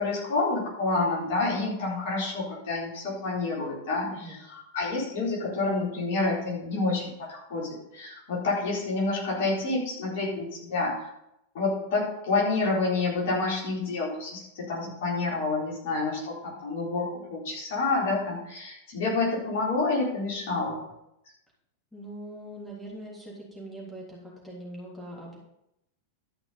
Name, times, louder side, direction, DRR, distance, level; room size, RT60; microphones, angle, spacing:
voice 1, 0.0-11.1 11.5-20.8, left 3 dB, 55° left, -5 dB, 4.2 m, -28 dB
voice 2, 21.9-25.4, right 1 dB, ahead, -6 dB, 3.5 m, -42 dB
12.5 x 5.9 x 5.5 m, 0.82 s
figure-of-eight pair, 90°, 0 cm